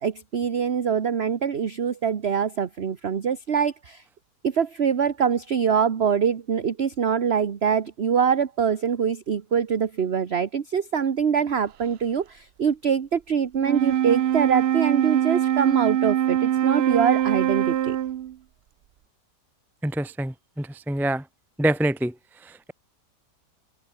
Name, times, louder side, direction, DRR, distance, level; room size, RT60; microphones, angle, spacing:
voice 1, 0.0-4.0 4.4-18.0, right 7 dB, 40° right, 1.3 m, -24 dB
Wind instrument woodwind instrument, 13.6-18.4, right 11 dB, 85° right, 0.5 m, -23 dB
voice 2, 19.8-21.3 21.6-22.7, right 1 dB, ahead, 0.5 m, -26 dB
omnidirectional pair, 1.8 m